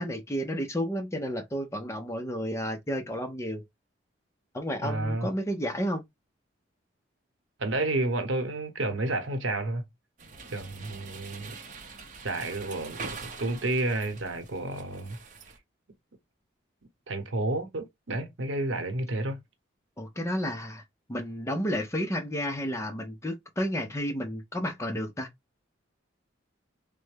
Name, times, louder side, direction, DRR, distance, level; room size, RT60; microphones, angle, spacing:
voice 1, 0.0-3.6 4.5-6.0 20.0-20.8 21.1-25.3, equal, 15° left, 0.5 m, -31 dB
voice 2, 4.8-5.3 7.6-9.8 10.5-11.5 12.2-15.2 17.1-19.4, right 2 dB, 80° right, 0.9 m, -30 dB
sound 1, 10.2-15.6, right 4 dB, 40° right, 0.6 m, -44 dB
3.3 x 2.1 x 3.2 m
head